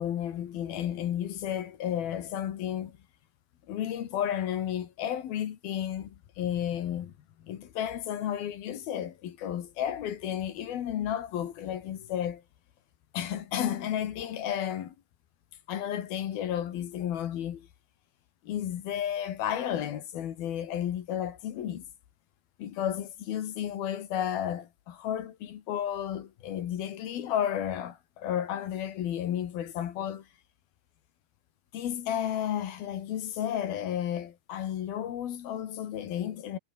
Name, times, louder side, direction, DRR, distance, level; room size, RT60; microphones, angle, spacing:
voice 1, 0.0-3.0 3.7-7.1 7.4-12.4 13.1-14.9 15.7-17.7 18.4-21.8 22.6-30.3 31.7-36.6, left 10 dB, 60° left, 3.2 m, -32 dB
omnidirectional pair, 5.5 m